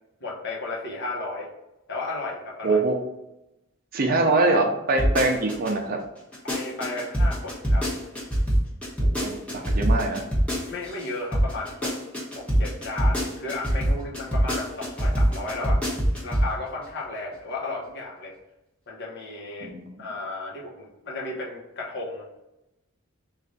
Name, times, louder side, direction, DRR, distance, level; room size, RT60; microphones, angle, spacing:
voice 1, 0.2-1.5 1.9-2.8 6.4-7.9 10.7-11.9 12.3-15.8 16.2-18.3 18.9-19.7 20.0-22.3, left 2 dB, 55° left, -3 dB, 1.0 m, -34 dB
voice 2, 2.6-3.0 3.9-6.0 9.2-10.2 19.6-19.9, right 2 dB, 45° right, 2 dB, 0.6 m, -23 dB
sound 1, 5.0-5.7 6.2-11.1 11.3-16.5 16.8-16.9, equal, 5° left, 0.9 m, -23 dB
3.2 x 2.5 x 3.9 m, 0.92 s
head